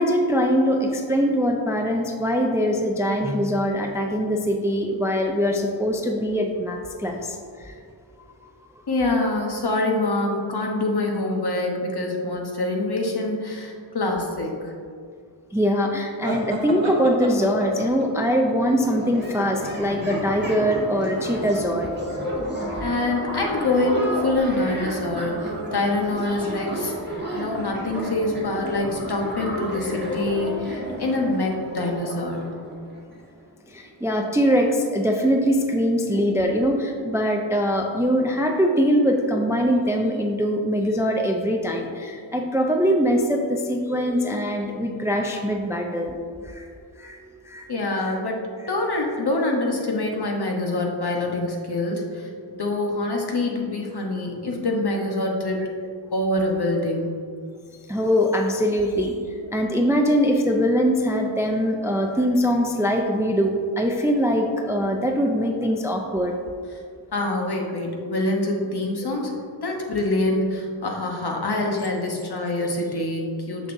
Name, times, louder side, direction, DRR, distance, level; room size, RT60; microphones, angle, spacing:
voice 1, 0.0-7.8 8.4-8.5 15.5-21.9 33.7-46.2 46.4-46.7 47.0-47.2 47.5-47.7 57.9-59.1 59.5-66.3 69.0-69.2, equal, 5° right, 2 dB, 0.4 m, -22 dB
voice 2, 8.9-14.7 22.8-26.9 27.3-32.6 47.7-55.7 56.1-57.2 67.1-73.7, left 2 dB, 55° left, 0 dB, 1.0 m, -25 dB
sound 1, 16.2-19.9, right 1 dB, 70° right, 1.0 m, -32 dB
sound 2, 18.6-33.2, right 1 dB, 20° right, 1.3 m, -32 dB
6.3 x 6.2 x 2.6 m, 2.2 s
wide cardioid pair, 90°, 46 cm